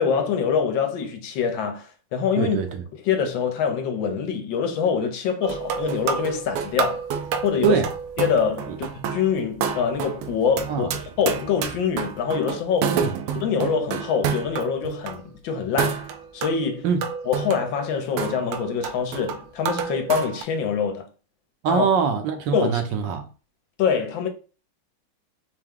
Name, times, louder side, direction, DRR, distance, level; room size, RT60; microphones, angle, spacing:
voice 1, 0.0-2.6 2.9-7.0 7.4-7.8 8.2-12.9 13.3-16.9 17.3-21.1 21.7-21.8 22.5-22.8 23.8-24.3, left 6 dB, 70° left, 1.4 m, -25 dB
voice 2, 2.4-2.8 7.6-7.9 10.7-10.9 12.9-13.1 16.8-17.0 21.6-23.2, right 6 dB, 70° right, 1.2 m, -23 dB
sound 1, 5.4-15.2 15.8-20.4, right 7 dB, 85° right, 1.5 m, -29 dB
4.7 x 2.2 x 3.7 m
omnidirectional pair, 2.3 m